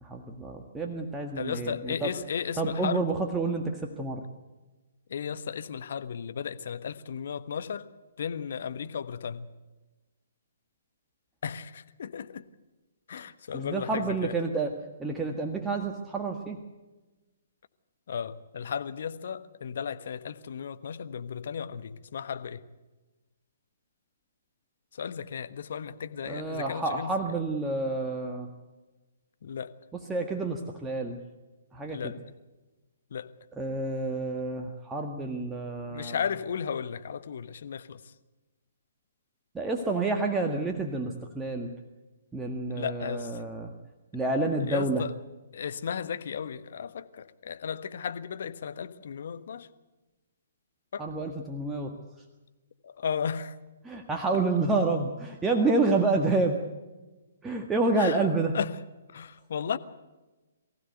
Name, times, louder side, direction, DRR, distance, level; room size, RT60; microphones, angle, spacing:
voice 1, 0.0-2.1 2.6-4.2 13.5-14.7 15.0-16.6 26.2-28.5 30.1-31.2 31.7-32.1 33.6-36.2 39.5-41.7 42.3-43.7 44.1-45.0 51.0-51.9 53.8-56.6 57.4-58.5, right 3 dB, 10° right, 1.7 m, -29 dB
voice 2, 1.3-3.1 5.1-7.9 8.2-9.5 11.4-12.4 13.1-14.4 18.1-22.6 24.9-27.4 29.4-29.8 31.9-32.2 33.1-33.3 35.9-38.1 42.7-43.4 44.7-45.2 45.5-49.7 50.9-51.1 52.8-53.6 58.0-58.3 58.5-58.8 59.1-59.8, left 7 dB, 60° left, 1.3 m, -35 dB
23.5 x 15.5 x 8.0 m
figure-of-eight pair, 130°, 0 cm